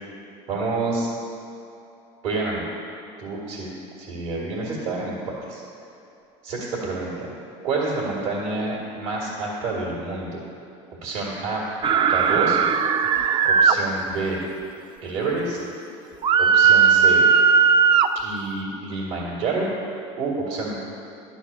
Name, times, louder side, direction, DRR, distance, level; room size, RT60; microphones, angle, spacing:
voice 1, 0.5-1.1 2.2-2.6 3.2-3.7 4.0-5.6 6.4-7.3 7.6-10.4 11.0-11.6 12.1-12.6 13.4-14.4 15.0-15.6 16.4-17.3 18.2-19.7 20.2-20.8, right 3 dB, 80° right, -5 dB, 2.0 m, -28 dB
sound 1, 11.8-13.8 16.2-18.1, right 6 dB, 35° right, 0.4 m, -17 dB
11.5 x 4.2 x 7.2 m, 2.7 s
supercardioid pair, 90°, 15 cm